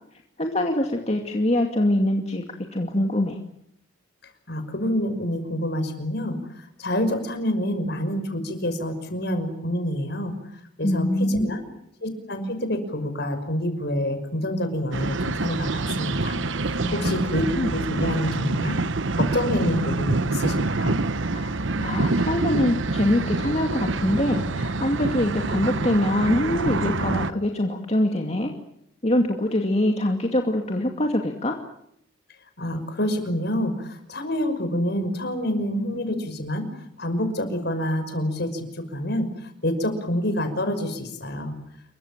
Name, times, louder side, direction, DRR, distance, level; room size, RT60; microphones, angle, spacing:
voice 1, 0.4-2.4 2.7-3.4 10.8-11.5 16.8-17.7 21.3-21.5 21.8-28.5 29.0-31.6, left 1 dB, 30° left, 2 dB, 2.4 m, -24 dB
voice 2, 4.5-10.3 10.8-11.6 12.0-17.4 17.7-18.8 19.1-21.0 32.6-36.7 37.0-41.6, left 1 dB, 55° left, 8 dB, 5.9 m, -27 dB
sound 1, 14.9-27.3, right 3 dB, 65° right, 1.0 m, -26 dB
28.5 x 23.5 x 7.5 m, 0.76 s
head